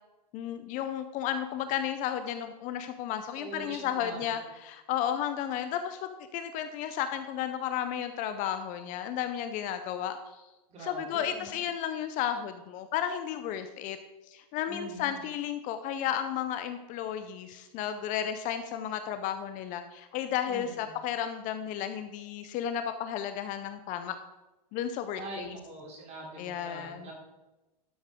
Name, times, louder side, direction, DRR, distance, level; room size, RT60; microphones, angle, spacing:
voice 1, 0.3-10.4 10.8-14.0 14.3-24.2 24.7-25.5 26.4-27.1, left 9 dB, 40° left, 9 dB, 0.7 m, -33 dB
voice 2, 3.4-4.4 10.7-11.6 14.7-15.3 20.5-21.0 25.1-27.1, right 2 dB, 30° right, -1 dB, 3.3 m, -44 dB
12.0 x 6.4 x 3.7 m, 1.1 s
hypercardioid pair, 120°, 21 cm